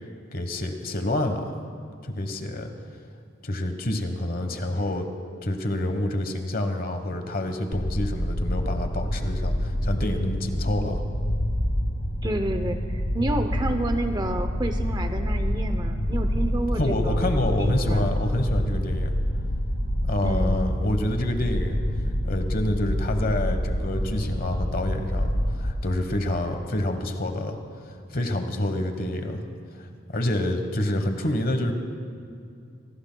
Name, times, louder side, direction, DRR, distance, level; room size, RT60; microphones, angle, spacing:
voice 1, 0.3-1.5 2.0-2.7 3.4-5.1 5.4-11.0 16.7-19.1 20.0-21.8 22.2-27.6 28.1-29.4 30.1-31.7, left 1 dB, 45° left, 6 dB, 1.2 m, -27 dB
sound 1, 7.7-25.7, equal, 70° left, 1.6 m, -27 dB
voice 2, 12.2-12.8 13.1-17.3 17.6-18.1 20.2-20.6, right 1 dB, 20° right, 7 dB, 0.6 m, -29 dB
25.5 x 17.5 x 2.3 m, 2.4 s
head